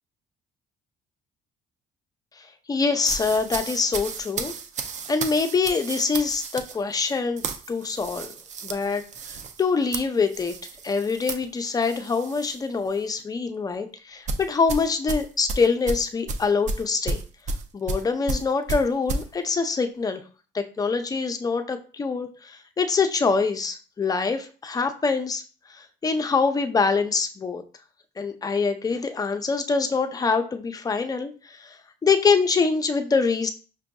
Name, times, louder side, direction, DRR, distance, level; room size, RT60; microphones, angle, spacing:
voice 1, 2.4-4.5 5.1-8.3 8.6-9.0 9.3-10.5 10.8-17.2 17.7-20.2 20.5-25.4 25.7-27.6 28.2-33.5, left 4 dB, 20° left, 6 dB, 0.5 m, -25 dB
sound 1, 3.0-12.6 12.9-13.2 14.3-19.3, right 3 dB, 45° right, 0.5 m, -33 dB
5.9 x 2.5 x 2.2 m, 0.37 s
cardioid pair, 110°, 17 cm